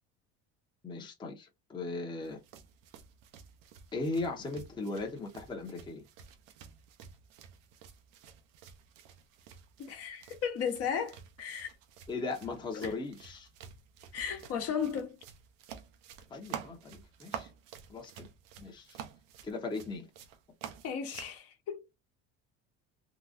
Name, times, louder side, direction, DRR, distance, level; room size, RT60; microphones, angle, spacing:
voice 1, 0.8-2.4 3.9-6.1 12.1-13.5 16.3-17.5 17.9-18.3 18.6-19.0 19.4-20.1, left 3 dB, 15° left, 0.8 m, -38 dB
sound 1, 2.2-21.4, right 8 dB, 85° right, 0.8 m, -50 dB
voice 2, 9.8-11.7 12.7-12.9 14.1-15.2 20.8-21.8, left 7 dB, 55° left, 1.1 m, -35 dB
3.8 x 2.3 x 2.5 m
cardioid pair, 125°, 29 cm